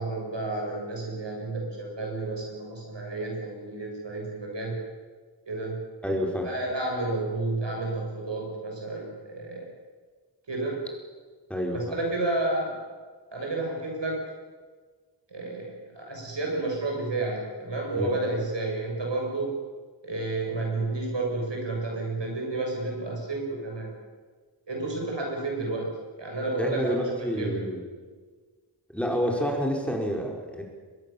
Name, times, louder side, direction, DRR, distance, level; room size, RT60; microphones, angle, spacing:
voice 1, 0.0-4.8 5.5-5.8 6.4-9.7 10.5-10.8 11.7-12.8 13.3-14.2 15.3-19.5 20.0-23.9 24.7-25.9 26.2-27.0 27.4-27.6, right 2 dB, 85° right, 0 dB, 7.9 m, -31 dB
voice 2, 6.0-6.5 11.5-11.8 18.0-18.1 26.6-27.8 28.9-30.6, equal, 5° left, 0 dB, 5.0 m, -28 dB
23.0 x 21.5 x 7.5 m, 1.5 s
wide cardioid pair, 70°, 42 cm